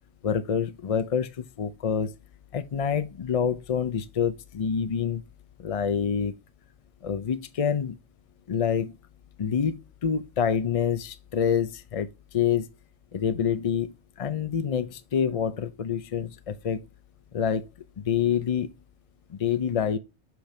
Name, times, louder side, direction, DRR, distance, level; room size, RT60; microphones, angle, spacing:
voice 1, 0.2-2.1 2.5-5.2 5.6-6.3 7.0-8.0 8.5-9.0 9.4-12.7 13.1-16.9 17.3-17.7 18.0-18.7 19.3-20.0, left 7 dB, 50° left, 0.4 m, -27 dB
7.7 x 5.1 x 3.2 m
omnidirectional pair, 1.2 m